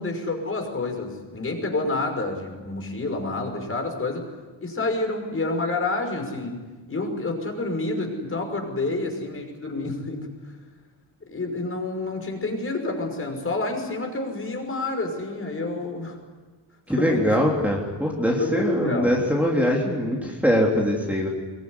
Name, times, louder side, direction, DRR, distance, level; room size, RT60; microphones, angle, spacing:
voice 1, 0.0-4.3 4.6-6.6 6.9-10.3 11.3-16.2 16.9-17.3 18.4-19.1, left 2 dB, 30° left, 3 dB, 5.8 m, -28 dB
voice 2, 16.9-21.3, equal, 5° right, -2 dB, 3.5 m, -22 dB
24.5 x 23.0 x 9.8 m, 1.3 s
wide cardioid pair, 165°, 45 cm